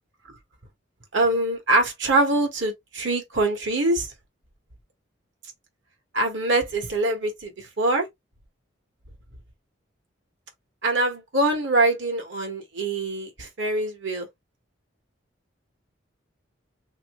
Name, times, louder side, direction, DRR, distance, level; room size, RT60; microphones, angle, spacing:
voice 1, 1.1-4.1 6.1-8.1 10.8-14.3, right 2 dB, 65° right, 1.3 m, -24 dB
3.1 x 2.9 x 3.0 m
head